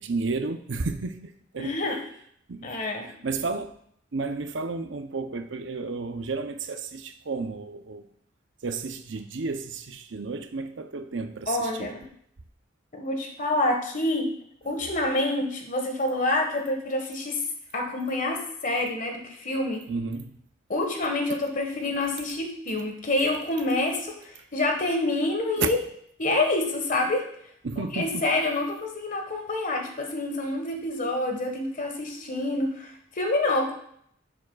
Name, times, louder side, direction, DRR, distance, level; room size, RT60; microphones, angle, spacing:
voice 1, 0.0-1.7 2.5-2.7 3.2-3.7 4.1-8.1 8.6-11.9 19.9-20.4 25.6-25.7 27.6-28.3, right 4 dB, 80° right, 0.7 m, -32 dB
voice 2, 1.6-2.0 2.6-3.1 11.5-12.0 12.9-14.3 14.6-17.4 17.7-19.8 20.7-25.8 26.2-27.2 27.7-33.7, left 2 dB, 45° left, 1.5 m, -27 dB
11.0 x 7.3 x 2.4 m
head